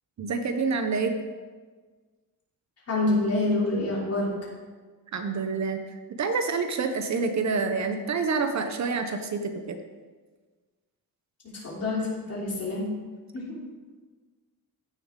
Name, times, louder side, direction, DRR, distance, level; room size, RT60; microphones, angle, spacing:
voice 1, 0.2-1.2 5.1-9.8, right 4 dB, 50° right, 7 dB, 0.7 m, -27 dB
voice 2, 2.9-4.3 11.5-12.9 13.3-13.6, left 2 dB, 40° left, -5 dB, 3.2 m, -27 dB
15.0 x 6.7 x 3.7 m, 1.4 s
wide cardioid pair, 165°, 37 cm